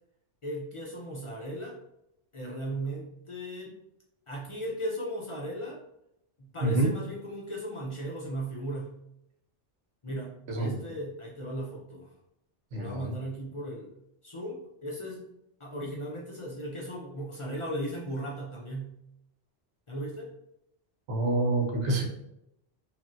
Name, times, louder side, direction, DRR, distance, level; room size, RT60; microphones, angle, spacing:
voice 1, 0.4-1.8 2.3-3.7 4.3-5.8 6.4-8.9 10.0-12.1 12.7-13.9 14.2-15.2 15.6-19.0 19.9-20.3, right 1 dB, 55° left, -3 dB, 0.3 m, -36 dB
voice 2, 6.6-6.9 10.5-10.8 12.7-13.1 21.1-22.0, right 2 dB, 80° right, 1 dB, 1.0 m, -27 dB
3.1 x 2.5 x 2.5 m, 0.82 s
omnidirectional pair, 1.2 m